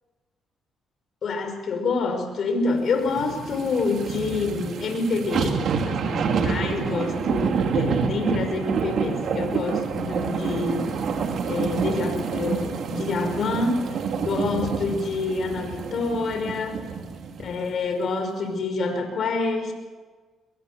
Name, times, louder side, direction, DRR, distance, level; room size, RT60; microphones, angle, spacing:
voice 1, 1.2-11.0 11.5-13.9 14.2-16.9 17.4-19.7, left 3 dB, 60° left, 6 dB, 5.4 m, -27 dB
sound 1, 3.0-17.5 17.9-18.0, right 6 dB, 65° right, 2.7 m, -28 dB
22.5 x 22.0 x 6.9 m, 1.4 s
cardioid pair, 90°, 0 cm